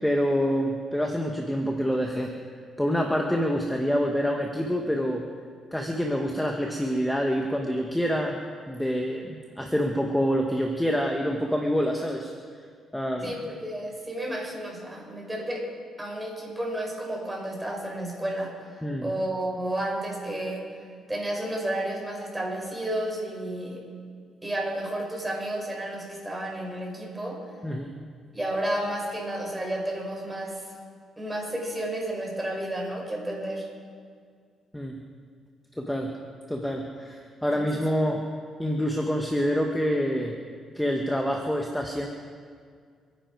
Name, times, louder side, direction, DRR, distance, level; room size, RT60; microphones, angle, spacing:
voice 1, 0.0-2.3 2.8-5.2 5.7-8.4 8.7-12.3 12.9-13.3 18.8-19.1 27.6-27.9 34.7-35.0 35.8-36.1 36.5-38.2 38.6-40.3 40.7-42.1, equal, 5° left, 1 dB, 1.5 m, -26 dB
voice 2, 13.2-15.7 16.0-20.7 21.1-23.8 24.4-27.4 28.3-30.8 31.2-33.7 37.5-37.8, right 1 dB, 10° right, -1 dB, 5.3 m, -32 dB
28.0 x 10.5 x 4.8 m, 2.1 s
cardioid pair, 90°, 0 cm